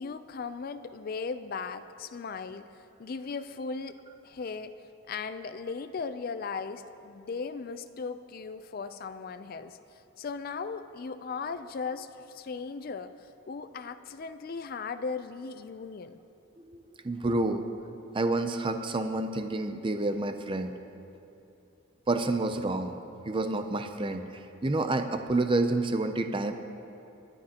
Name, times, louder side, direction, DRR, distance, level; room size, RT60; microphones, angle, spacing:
voice 1, 0.0-2.7 3.0-4.7 5.1-9.8 10.2-16.2, left 5 dB, 45° left, 10 dB, 0.4 m, -37 dB
voice 2, 16.7-17.7 18.1-20.7 22.1-23.0 23.3-24.2 24.6-26.5, right 2 dB, 25° right, 7 dB, 0.5 m, -28 dB
24.5 x 9.9 x 2.9 m, 2.9 s
head